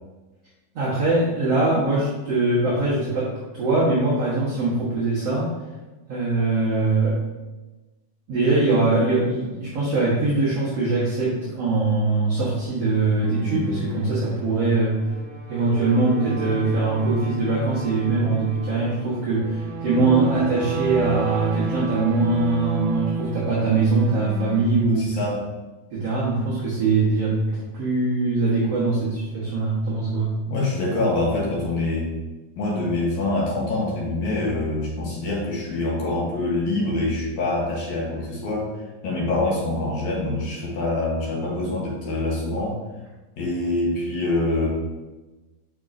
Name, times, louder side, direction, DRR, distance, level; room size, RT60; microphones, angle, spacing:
voice 1, 0.8-5.5 6.1-7.2 8.3-15.0 15.5-25.1 25.9-30.3, right 3 dB, 55° right, -8 dB, 2.0 m, -22 dB
sound 1, 13.2-24.6, right 3 dB, 75° right, 3.2 m, -32 dB
voice 2, 24.9-25.4 30.5-32.1 32.6-38.7 39.0-42.8 43.4-44.7, left 2 dB, 60° left, -3 dB, 2.3 m, -25 dB
9.1 x 5.7 x 2.7 m, 1.1 s
omnidirectional pair, 4.4 m